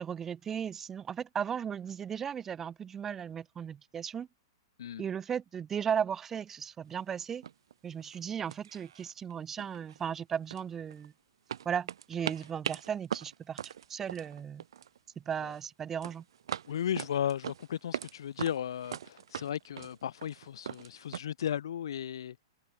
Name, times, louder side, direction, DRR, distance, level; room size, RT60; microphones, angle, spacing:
voice 1, 0.0-4.3 5.0-7.5 7.8-11.1 11.7-14.6 15.3-16.2, right 8 dB, 10° right, 0.3 m, -36 dB
sound 1, 6.9-7.0 7.4-7.7 8.0-8.2 8.5-9.3 9.6-11.1 11.5-15.0 15.3-15.7 16.0-18.1 18.4-21.2, right 9 dB, 85° right, 1.0 m, -40 dB
voice 2, 16.7-22.4, left 9 dB, 75° left, 1.9 m, -35 dB
hypercardioid pair, 170°, 2 cm